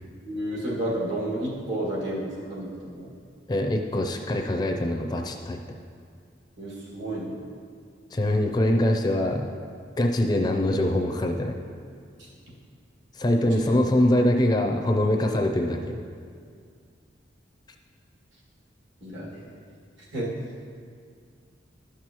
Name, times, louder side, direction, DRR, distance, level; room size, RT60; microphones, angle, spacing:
voice 1, 0.3-3.1 6.6-7.4 12.2-12.3 13.3-13.8 19.0-19.6 20.0-20.3, right 1 dB, 70° right, -5 dB, 2.0 m, -32 dB
voice 2, 3.5-5.6 8.1-9.5 10.0-11.6 13.1-16.0, left 1 dB, 20° left, 3 dB, 0.4 m, -23 dB
11.5 x 6.1 x 2.9 m, 2.2 s
head